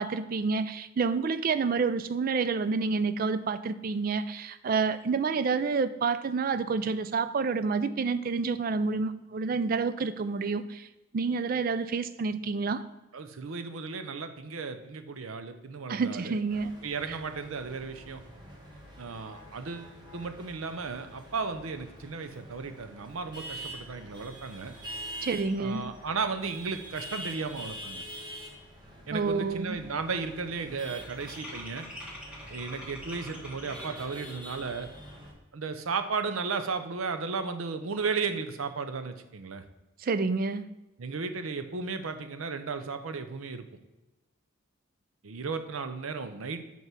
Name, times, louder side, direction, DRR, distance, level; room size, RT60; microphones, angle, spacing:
voice 1, 0.0-10.9 11.1-12.8 15.9-16.7 17.1-17.2 25.2-25.9 29.1-29.8 40.0-40.7, right 4 dB, 45° right, 13 dB, 0.3 m, -29 dB
voice 2, 13.1-16.4 16.8-18.2 19.0-24.7 25.6-28.0 29.1-31.9 32.5-34.9 35.5-39.6 41.0-43.6 45.2-46.6, right 4 dB, 90° right, 9 dB, 0.7 m, -35 dB
sound 1, 16.5-35.3, equal, 20° right, 1.2 m, -45 dB
sound 2, 28.5-28.6 28.9-29.3 29.5-34.2, equal, 5° right, 1.4 m, -45 dB
5.6 x 4.6 x 6.0 m, 1.0 s
head